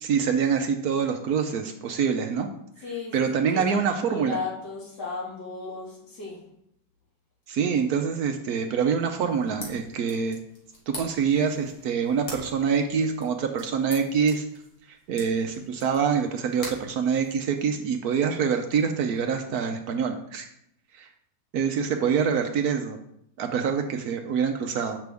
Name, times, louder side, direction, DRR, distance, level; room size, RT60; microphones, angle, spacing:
voice 1, 0.0-2.5 3.1-4.4 7.5-10.4 10.9-14.4 14.9-20.5 20.9-21.1 21.5-23.0 23.4-25.0, right 6 dB, 70° right, 5 dB, 1.1 m, -25 dB
voice 2, 2.8-6.4, left 3 dB, 65° left, -8 dB, 3.7 m, -35 dB
sound 1, 9.3-17.8, left 1 dB, 40° left, 1.8 m, -45 dB
7.7 x 6.0 x 3.5 m, 0.76 s
omnidirectional pair, 1.9 m